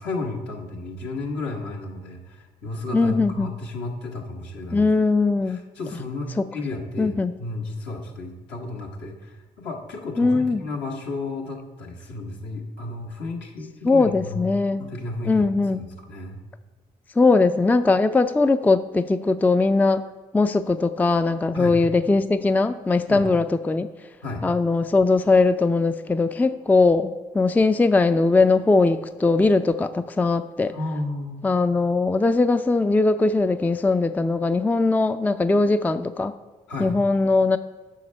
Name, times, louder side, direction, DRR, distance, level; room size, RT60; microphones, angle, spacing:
voice 1, 0.0-4.9 5.4-14.4 14.8-16.4 21.5-21.8 23.1-23.3 24.2-24.4 30.7-31.5 36.7-36.9, left 2 dB, 65° left, 0 dB, 1.4 m, -33 dB
voice 2, 2.9-3.5 4.7-5.6 6.4-6.5 7.0-7.3 10.2-10.6 13.8-14.8 15.3-15.9 17.2-20.0 20.3-23.9 24.4-30.7 31.4-36.3 36.8-37.6, left 3 dB, 10° left, 11 dB, 0.4 m, -20 dB
8.4 x 6.0 x 4.4 m, 1.3 s
hypercardioid pair, 40°, 19 cm